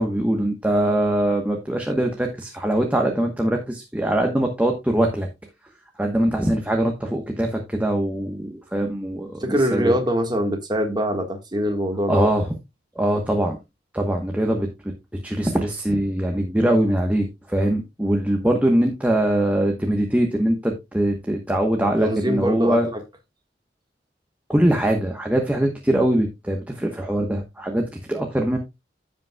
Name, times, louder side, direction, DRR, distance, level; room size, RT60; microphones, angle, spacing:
voice 1, 0.0-5.3 6.0-9.4 9.7-9.9 12.1-12.5 13.0-13.6 13.9-14.7 15.2-22.9 24.5-28.6, right 1 dB, 10° right, 1.0 m, -22 dB
voice 2, 9.4-12.3 22.0-23.0, equal, 25° right, 1.5 m, -23 dB
15.5 x 5.3 x 2.3 m
head